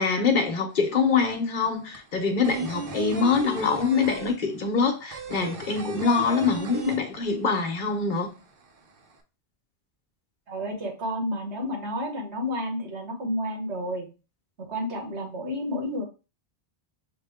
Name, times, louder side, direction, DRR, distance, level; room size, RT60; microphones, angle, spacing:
voice 1, 0.0-8.3, left 5 dB, 50° left, 1.0 m, -24 dB
sound 1, 0.7-0.8 1.1-7.6 7.9-8.0 8.3-9.1, right 3 dB, 60° right, 0.8 m, -36 dB
voice 2, 10.5-14.1 14.6-16.0, left 1 dB, 85° right, 1.6 m, -31 dB
6.1 x 2.2 x 3.5 m
omnidirectional pair, 1.1 m